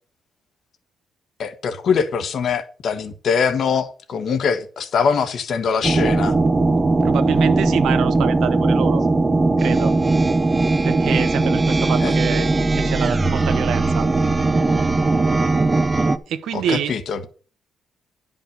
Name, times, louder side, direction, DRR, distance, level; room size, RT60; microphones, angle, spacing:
voice 1, 1.4-6.4 12.0-12.1 16.5-17.3, left 6 dB, 55° left, 1.5 m, -22 dB
sound 1, 5.8-16.2, right 3 dB, 20° right, 0.8 m, -19 dB
voice 2, 7.0-9.0 9.6-9.9 10.8-12.5 12.7-14.1 16.3-16.9, right 8 dB, 80° right, 1.2 m, -26 dB
10.5 x 5.4 x 6.7 m
cardioid pair, 125°, 0 cm